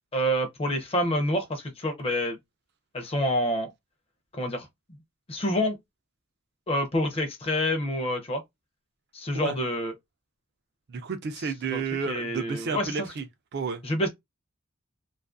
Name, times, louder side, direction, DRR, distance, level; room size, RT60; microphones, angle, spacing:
voice 1, 0.1-2.4 2.9-3.7 4.3-4.7 5.3-5.8 6.7-8.4 9.1-9.9 11.7-13.1 13.8-14.1, equal, 25° left, 0.5 m, -27 dB
voice 2, 10.9-13.3 13.5-13.8, right 5 dB, 50° right, 0.4 m, -31 dB
2.5 x 2.4 x 2.4 m
head